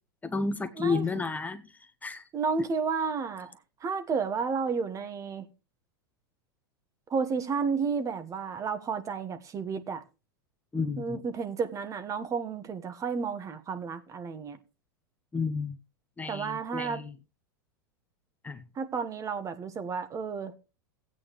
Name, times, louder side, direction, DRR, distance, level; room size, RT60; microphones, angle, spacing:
voice 1, 0.2-1.6 2.0-2.2 10.7-11.2 15.3-15.8 16.2-17.1 18.4-18.6, left 4 dB, 15° left, 0.8 m, -31 dB
voice 2, 0.8-1.1 2.3-5.5 7.1-10.0 11.0-14.6 16.3-17.0 18.7-20.5, right 5 dB, 25° right, 1.2 m, -32 dB
15.0 x 8.8 x 3.0 m
hypercardioid pair, 110°, 12 cm